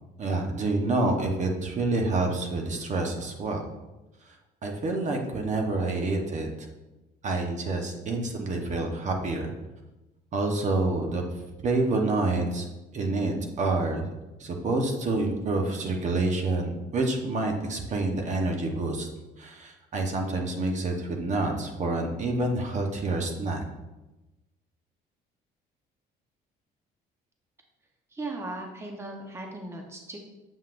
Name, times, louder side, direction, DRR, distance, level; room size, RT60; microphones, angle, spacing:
voice 1, 0.2-3.6 4.6-6.5 7.2-9.5 10.3-11.2 11.6-12.7 12.9-14.1 14.4-19.1 19.4-23.6, right 2 dB, 45° right, 2 dB, 1.0 m, -28 dB
voice 2, 28.1-30.2, right 2 dB, 15° right, 2 dB, 0.9 m, -37 dB
7.3 x 5.6 x 2.5 m, 1.0 s
cardioid pair, 110°, 17 cm